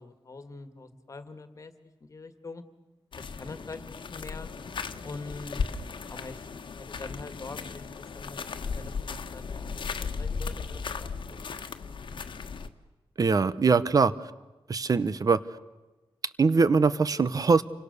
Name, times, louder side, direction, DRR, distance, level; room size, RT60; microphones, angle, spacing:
voice 1, 0.0-1.7 2.0-2.6 3.2-4.5 5.0-5.7 6.1-6.5 6.7-11.5, left 3 dB, 35° left, 9 dB, 1.9 m, -44 dB
sound 1, 3.1-12.7, left 5 dB, 60° left, 1.4 m, -36 dB
voice 2, 13.2-14.3 14.7-15.4 16.4-17.6, right 4 dB, 40° right, 16 dB, 0.9 m, -22 dB
28.5 x 25.0 x 6.8 m, 1.1 s
wide cardioid pair, 155°, 9 cm